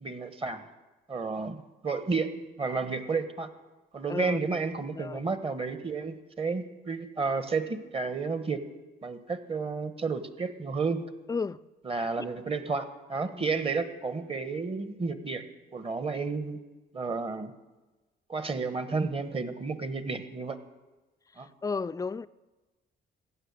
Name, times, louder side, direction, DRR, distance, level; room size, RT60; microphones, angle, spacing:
voice 1, 0.0-0.6 1.1-3.5 3.9-8.6 9.0-11.0 11.8-15.4 15.7-16.6 16.9-17.5 18.3-20.6 21.4-21.5, right 4 dB, 30° right, 1.2 m, -31 dB
voice 2, 4.1-4.4 4.9-5.2 11.3-11.6 12.2-12.3 13.3-13.6 21.6-22.3, left 4 dB, 20° left, 0.4 m, -33 dB
15.5 x 6.7 x 9.7 m
cardioid pair, 90°, 20 cm